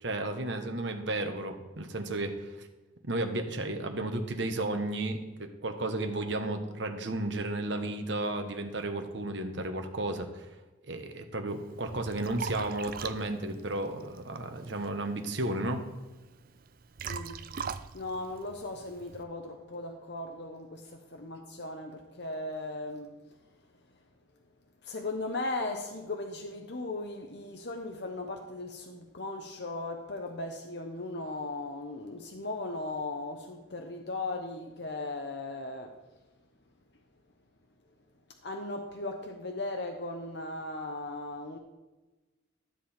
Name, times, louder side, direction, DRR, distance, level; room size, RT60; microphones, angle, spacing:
voice 1, 0.0-2.7 3.0-10.5 10.9-15.8, right 2 dB, 65° right, 1.2 m, -33 dB
Liquid, 11.5-19.2, right 6 dB, 45° right, 0.4 m, -43 dB
voice 2, 17.1-17.4 17.9-23.2 24.8-35.9 38.4-41.6, left 2 dB, 60° left, 0.9 m, -37 dB
13.0 x 7.6 x 4.4 m
head